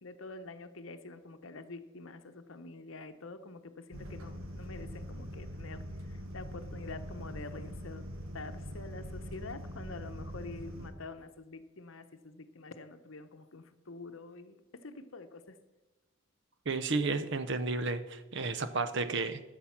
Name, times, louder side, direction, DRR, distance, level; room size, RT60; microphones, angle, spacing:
voice 1, 0.0-5.8 6.3-8.0 8.3-15.6, left 3 dB, 65° left, 9 dB, 0.9 m, -46 dB
sound 1, 3.9-10.9, equal, 75° right, 1.2 m, -43 dB
voice 2, 16.7-19.4, right 3 dB, 55° right, 11 dB, 0.7 m, -32 dB
12.5 x 7.5 x 5.9 m, 1.2 s
head